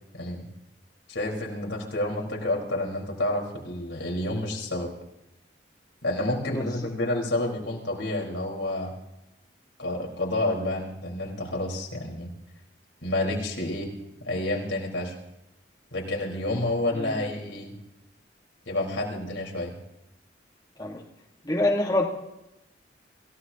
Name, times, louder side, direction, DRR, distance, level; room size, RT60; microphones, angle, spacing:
voice 1, 0.1-0.4 1.1-4.9 6.0-8.9 9.8-12.3 13.0-13.9 14.2-15.1 15.9-17.7 18.7-19.7, left 1 dB, 85° left, -1 dB, 4.4 m, -29 dB
voice 2, 21.4-22.1, left 1 dB, 20° left, -1 dB, 1.6 m, -26 dB
27.0 x 16.5 x 2.9 m, 0.90 s
head